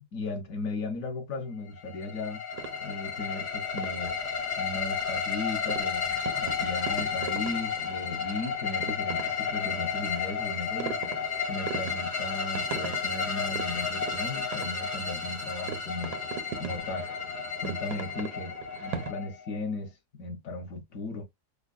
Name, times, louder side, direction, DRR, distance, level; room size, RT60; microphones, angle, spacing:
voice 1, 0.1-2.4 2.8-4.2 4.6-11.0 11.5-17.1 17.6-18.5 18.8-21.2, left 2 dB, 60° left, 1.2 m, -36 dB
sound 1, 1.8-19.6, left 6 dB, 85° left, 2.3 m, -32 dB
sound 2, 2.5-19.1, right 9 dB, 85° right, 1.2 m, -42 dB
4.9 x 2.2 x 2.3 m
omnidirectional pair, 1.7 m